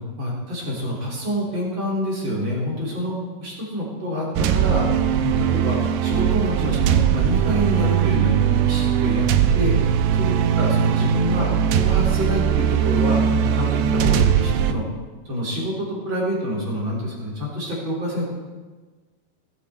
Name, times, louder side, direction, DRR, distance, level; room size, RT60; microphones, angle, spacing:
voice 1, 0.0-4.3 4.5-4.8 5.2-9.3 9.5-9.8 10.1-11.5 11.8-14.8 15.3-18.2, equal, 30° right, -4 dB, 4.0 m, -27 dB
sound 1, 4.4-14.7, right 9 dB, 85° right, 2.8 m, -20 dB
19.0 x 9.6 x 4.3 m, 1.3 s
omnidirectional pair, 4.7 m